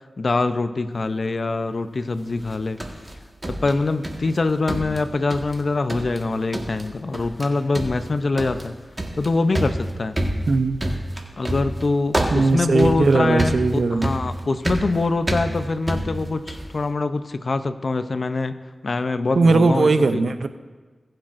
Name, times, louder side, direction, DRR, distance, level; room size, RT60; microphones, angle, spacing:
voice 1, 0.2-2.8 3.4-8.8 9.1-10.2 11.4-18.5 18.8-20.3, left 3 dB, 60° left, 10 dB, 0.6 m, -24 dB
sound 1, 2.4-4.4 4.7-5.6 5.9-6.2 6.5-6.9 7.1-7.5 7.7-16.7, right 1 dB, 30° right, 1.6 m, -28 dB
voice 2, 10.5-10.8 12.3-14.1 19.4-20.5, right 3 dB, 70° right, 10 dB, 0.6 m, -18 dB
20.0 x 7.6 x 2.6 m, 1.4 s
cardioid pair, 45°, 0 cm